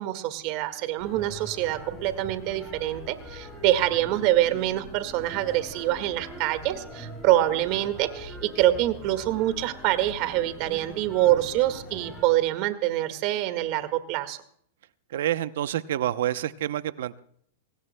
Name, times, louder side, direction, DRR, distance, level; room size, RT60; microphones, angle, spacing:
voice 1, 0.0-14.4, right 14 dB, 50° right, 10 dB, 1.8 m, -25 dB
sound 1, 1.0-12.2, equal, 10° left, 7.3 m, -42 dB
voice 2, 15.1-17.2, right 12 dB, 75° right, 14 dB, 0.7 m, -28 dB
24.0 x 18.5 x 2.2 m, 0.64 s
hypercardioid pair, 130°, 0 cm